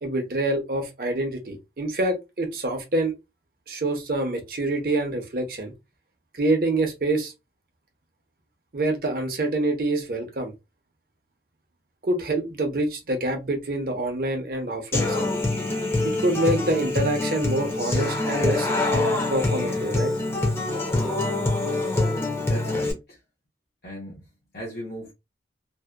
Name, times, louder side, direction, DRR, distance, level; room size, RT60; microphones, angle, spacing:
voice 1, 0.0-3.1 3.7-5.7 6.3-7.3 8.7-10.5 12.0-15.3 16.0-18.7 19.3-20.1, right 2 dB, 55° right, 0.6 m, -26 dB
Human voice / Acoustic guitar, 14.9-22.9, left 2 dB, 15° left, 0.5 m, -25 dB
voice 2, 22.5-23.2 23.8-24.2 24.5-25.1, equal, 60° left, 0.7 m, -36 dB
2.6 x 2.1 x 2.2 m
head